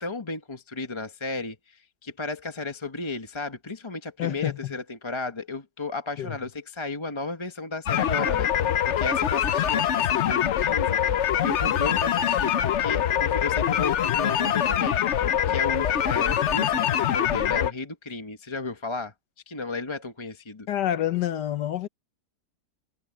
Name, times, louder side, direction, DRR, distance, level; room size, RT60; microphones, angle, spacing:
voice 1, 0.0-19.1 19.5-20.7, left 3 dB, 20° left, 1.0 m, -34 dB
voice 2, 4.2-4.7 6.2-6.4 20.7-21.9, left 11 dB, 90° left, 1.6 m, -28 dB
sound 1, 7.9-17.7, left 10 dB, 55° left, 0.8 m, -24 dB
omnidirectional pair, 1.8 m